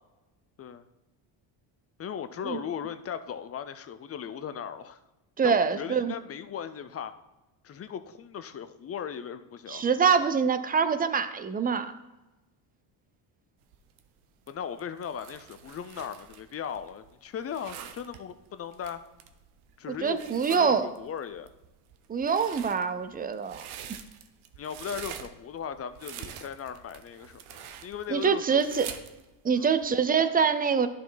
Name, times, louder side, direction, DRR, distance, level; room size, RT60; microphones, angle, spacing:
voice 1, 2.0-5.0 5.4-7.1 7.6-9.9 14.5-19.0 19.8-21.5 24.6-28.9 29.5-29.7, left 8 dB, 30° left, 11 dB, 0.5 m, -38 dB
voice 2, 5.4-6.1 9.7-11.9 20.0-20.9 22.1-23.7 28.1-28.9 29.4-30.9, right 6 dB, 20° right, 11 dB, 0.5 m, -25 dB
sound 1, 13.6-29.9, right 9 dB, 85° right, 0.9 m, -46 dB
11.0 x 4.7 x 4.0 m, 1.0 s
cardioid pair, 110°, 47 cm